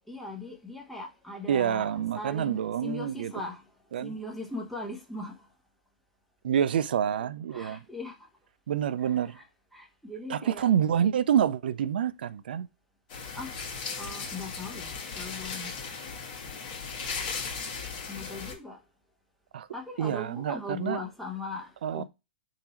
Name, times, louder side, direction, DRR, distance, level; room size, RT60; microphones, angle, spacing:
voice 1, 0.1-3.7 4.0-5.5 7.5-8.3 9.0-9.4 9.7-10.7 13.4-13.6 14.0-15.8 18.1-18.8 19.7-22.0, left 2 dB, ahead, 1.0 m, -39 dB
voice 2, 1.5-3.3 3.9-4.1 6.4-7.8 8.7-9.4 10.3-12.7 19.5-19.7 20.0-21.0 21.8-22.0, right 9 dB, 70° right, 0.3 m, -27 dB
sound 1, 13.1-18.5, left 5 dB, 50° left, 1.6 m, -37 dB
3.7 x 2.7 x 4.1 m
hypercardioid pair, 110°, 5 cm